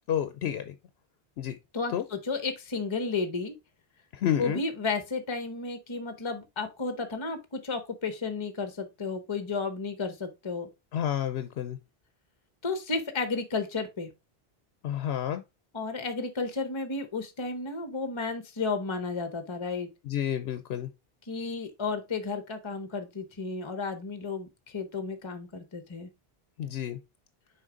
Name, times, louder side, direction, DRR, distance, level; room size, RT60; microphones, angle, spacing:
voice 1, 0.1-0.7 1.4-1.6 1.9-2.0 4.1-4.6 10.9-11.8 14.8-15.4 20.1-20.9 26.6-27.0, left 10 dB, 85° left, 0.9 m, -30 dB
voice 2, 1.7-3.5 4.4-10.7 12.6-14.1 15.7-19.9 21.3-26.1, left 4 dB, 30° left, 0.9 m, -33 dB
6.4 x 4.3 x 3.7 m
omnidirectional pair, 1.0 m